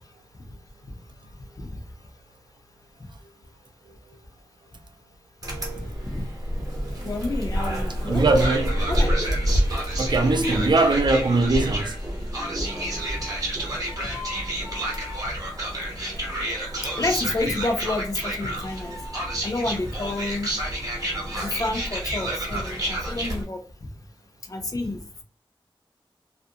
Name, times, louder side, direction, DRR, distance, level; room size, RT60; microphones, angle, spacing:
sound 1, 5.4-23.4, equal, 40° right, 0.8 m, -28 dB
voice 1, 7.0-8.2 8.9-9.2 10.2-10.8 13.2-13.3 16.9-19.0 19.4-20.5 21.3-23.6 24.5-25.0, left 2 dB, 40° left, 0.5 m, -29 dB
voice 2, 8.1-8.7 10.0-11.9, right 3 dB, 55° right, 0.4 m, -21 dB
2.4 x 2.1 x 2.7 m
wide cardioid pair, 100°, 9 cm